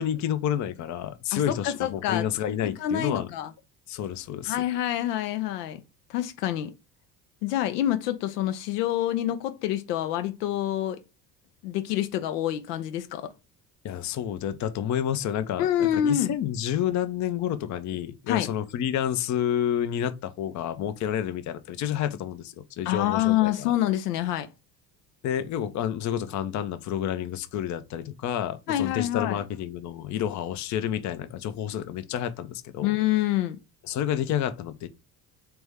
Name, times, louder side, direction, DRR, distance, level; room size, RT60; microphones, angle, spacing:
voice 1, 0.0-3.3 3.9-4.6 13.8-23.7 25.2-32.9 33.9-34.9, left 10 dB, 35° left, 0.6 m, -29 dB
voice 2, 1.3-2.3 2.6-3.5 4.5-5.8 6.1-6.7 7.4-11.0 11.6-13.3 15.6-16.3 18.3-18.5 22.9-24.5 28.7-29.4 32.8-33.6, left 12 dB, 70° left, 0.7 m, -27 dB
3.5 x 3.0 x 3.4 m
hypercardioid pair, 60°, 49 cm